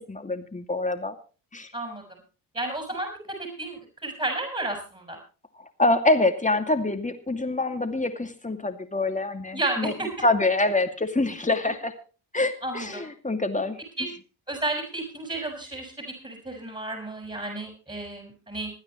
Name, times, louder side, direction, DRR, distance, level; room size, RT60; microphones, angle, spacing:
voice 1, 0.1-1.2 1.5-1.7 5.6-9.9 10.2-11.9 12.3-13.8, left 2 dB, 15° left, 7 dB, 2.4 m, -25 dB
voice 2, 1.7-2.0 2.5-5.2 9.5-10.1 12.6-13.1 14.0-14.1 14.5-18.7, right 2 dB, 15° right, 1 dB, 5.8 m, -32 dB
26.5 x 9.6 x 3.1 m, 0.35 s
supercardioid pair, 55°, 48 cm